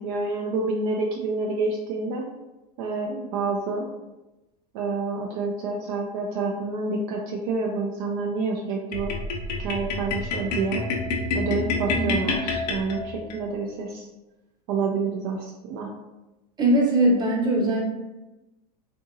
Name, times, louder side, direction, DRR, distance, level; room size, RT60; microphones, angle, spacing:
voice 1, 0.0-2.2 2.8-3.9 4.7-9.1 9.6-10.8 11.3-14.1 14.7-15.9, right 3 dB, 60° right, 0 dB, 0.4 m, -28 dB
sound 1, 8.9-13.4, left 3 dB, 80° left, 0.6 m, -28 dB
voice 2, 16.6-17.8, right 1 dB, 20° right, -2 dB, 0.9 m, -21 dB
2.7 x 2.6 x 2.5 m, 1.0 s
hypercardioid pair, 100°, 21 cm